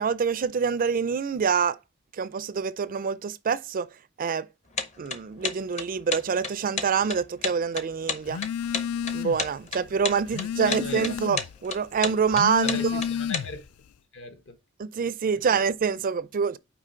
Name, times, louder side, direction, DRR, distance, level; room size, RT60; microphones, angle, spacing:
voice 1, 0.0-1.8 2.2-3.9 4.2-4.5 5.0-8.4 9.1-13.0 14.8-16.6, right 6 dB, 40° right, 0.4 m, -26 dB
sound 1, 4.7-13.4, left 5 dB, 30° left, 0.8 m, -31 dB
Telephone, 8.3-9.5 9.9-11.6 12.2-13.7, left 8 dB, 80° left, 0.3 m, -31 dB
voice 2, 10.6-11.1 12.6-13.6 14.1-14.5 15.5-15.7, left 2 dB, 60° left, 1.2 m, -37 dB
6.0 x 4.7 x 4.4 m
head